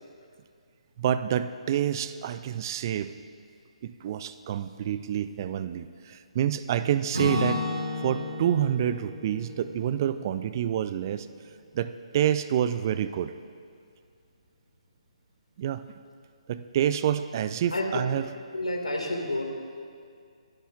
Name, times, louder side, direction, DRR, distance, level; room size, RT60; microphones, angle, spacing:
voice 1, 1.0-3.1 3.8-7.6 8.0-11.3 11.7-13.3 15.6-15.9 16.5-18.3, right 10 dB, 30° right, 13 dB, 0.3 m, -28 dB
Acoustic guitar / Strum, 7.1-11.1, left 2 dB, 80° right, 2.5 m, -33 dB
voice 2, 18.5-19.4, left 1 dB, 75° left, 2 dB, 2.0 m, -29 dB
22.5 x 11.0 x 2.4 m, 2.3 s
figure-of-eight pair, 140°, 4 cm